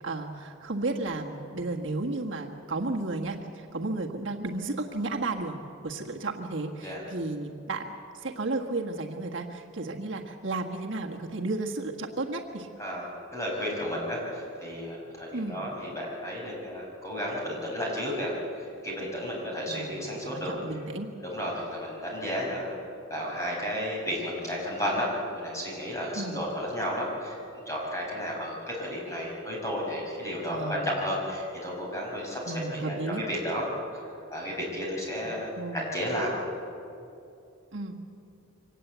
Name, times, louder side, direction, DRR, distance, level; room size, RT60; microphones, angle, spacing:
voice 1, 0.0-7.9 8.1-12.7 15.3-15.6 19.7-21.1 26.1-26.4 30.5-30.9 32.4-33.2 35.2-35.9 37.7-38.0, right 2 dB, 65° right, 1 dB, 1.6 m, -33 dB
voice 2, 12.8-20.5 21.2-22.8 23.1-25.1 25.3-32.4 32.7-33.6 34.3-36.3, equal, 15° left, -3 dB, 5.8 m, -33 dB
24.0 x 18.5 x 8.1 m, 2.7 s
head